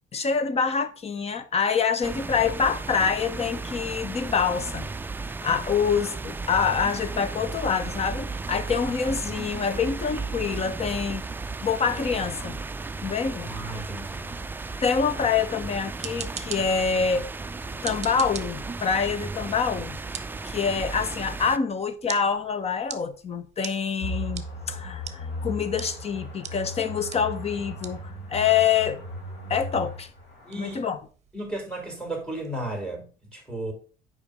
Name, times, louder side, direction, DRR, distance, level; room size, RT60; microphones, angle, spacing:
voice 1, 0.1-4.9 5.4-11.2 11.6-12.6 13.0-13.5 14.8-17.3 17.8-20.0 20.4-29.0 29.5-30.1 30.6-31.0, left 6 dB, 40° left, 1.0 m, -26 dB
sound 1, 2.0-21.6, right 3 dB, 10° right, 0.4 m, -35 dB
voice 2, 13.4-14.3 30.4-30.8 31.3-33.7, right 1 dB, 5° left, 3.2 m, -34 dB
sound 2, 15.7-32.5, right 8 dB, 40° right, 0.8 m, -45 dB
sound 3, 24.0-30.8, left 1 dB, 85° left, 2.1 m, -37 dB
7.0 x 5.1 x 5.0 m
cardioid pair, 110°, 17 cm